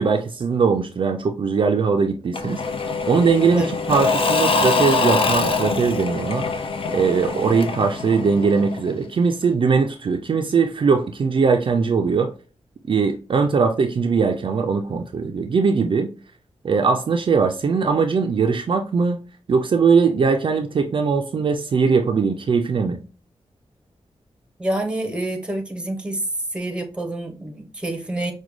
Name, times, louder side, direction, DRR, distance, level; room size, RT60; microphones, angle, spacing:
voice 1, 0.0-2.6 3.1-6.5 6.9-12.3 12.9-16.1 16.6-19.2 19.5-23.0, right 5 dB, 50° right, 4 dB, 0.3 m, -20 dB
Engine / Mechanisms / Drill, 2.3-9.0, left 4 dB, 55° left, 0.5 m, -24 dB
voice 2, 24.6-26.2 26.5-28.3, right 1 dB, 10° right, 4 dB, 0.7 m, -27 dB
5.0 x 2.2 x 3.0 m, 0.36 s
wide cardioid pair, 135°, 11 cm